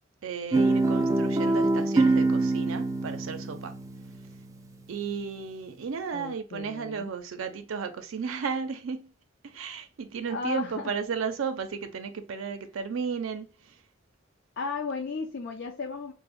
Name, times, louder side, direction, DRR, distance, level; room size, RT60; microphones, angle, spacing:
voice 1, 0.2-3.7 4.9-9.1 9.4-13.7, right 6 dB, 85° right, 0.4 m, -34 dB
Guitar, 0.5-4.9, right 2 dB, 15° right, 0.3 m, -25 dB
voice 2, 6.1-7.1 10.3-10.9 14.6-16.1, left 4 dB, 60° left, 0.4 m, -34 dB
3.3 x 2.0 x 3.4 m
head